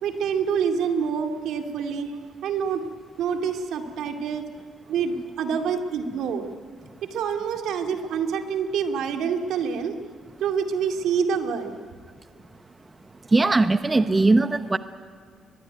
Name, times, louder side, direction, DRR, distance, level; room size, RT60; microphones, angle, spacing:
voice 1, 0.0-2.1 2.4-2.8 3.2-4.4 4.9-6.5 7.0-10.0 10.4-11.8, right 6 dB, 80° right, 5 dB, 2.4 m, -26 dB
voice 2, 13.3-14.8, right 2 dB, 20° right, 11 dB, 0.8 m, -19 dB
22.5 x 21.0 x 9.4 m, 2.1 s
cardioid pair, 90°, 0 cm